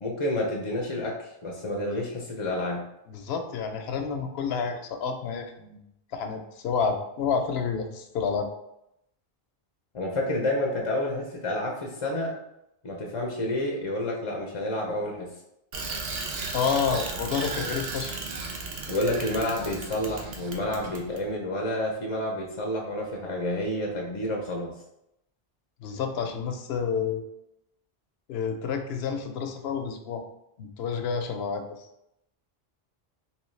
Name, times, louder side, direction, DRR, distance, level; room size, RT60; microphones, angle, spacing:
voice 1, 0.0-2.8 9.9-12.3 12.8-15.3 18.9-24.7, left 1 dB, 40° left, -1 dB, 0.5 m, -29 dB
voice 2, 3.1-5.8 6.1-8.5 16.5-18.2 25.8-27.2 28.3-30.2 30.6-31.6, left 6 dB, 75° left, 6 dB, 0.8 m, -29 dB
Bicycle, 15.7-21.2, right 3 dB, 75° right, 0.9 m, -35 dB
3.7 x 2.9 x 3.1 m, 0.82 s
omnidirectional pair, 1.1 m